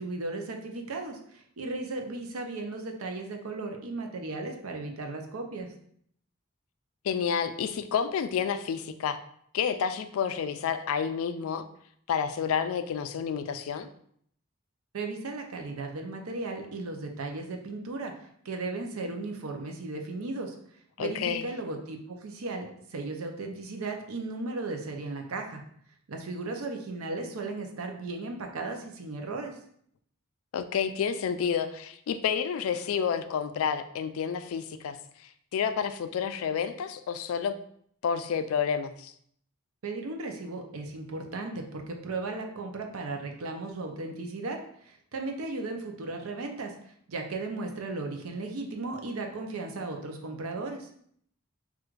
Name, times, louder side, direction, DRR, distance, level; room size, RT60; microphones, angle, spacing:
voice 1, 0.0-5.7 14.9-20.6 21.0-25.6 26.1-29.6 39.8-50.9, right 3 dB, 85° right, 3 dB, 0.6 m, -36 dB
voice 2, 7.0-9.2 9.5-11.7 12.1-13.9 21.0-21.4 30.5-35.0 35.5-37.6 38.0-39.1, left 7 dB, 75° left, 11 dB, 0.3 m, -29 dB
4.5 x 2.4 x 2.4 m, 0.65 s
head